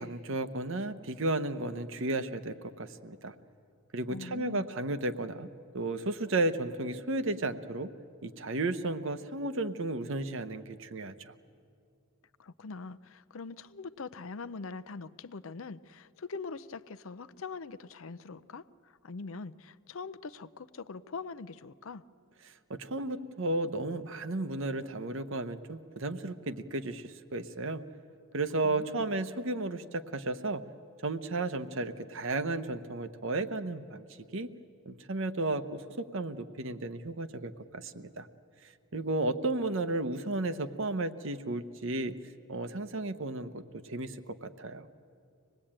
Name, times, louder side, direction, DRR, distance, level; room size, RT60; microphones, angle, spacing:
voice 1, 0.0-3.4 3.9-7.9 8.2-11.3 22.7-27.8 28.3-30.6 31.0-34.1 34.3-34.5 34.9-38.3 38.9-42.1 42.5-44.9, right 2 dB, 60° right, 11 dB, 0.9 m, -33 dB
voice 2, 4.1-4.7 12.4-22.0 28.6-29.1, left 4 dB, 65° left, 13 dB, 0.6 m, -43 dB
25.0 x 19.5 x 8.8 m, 2.4 s
head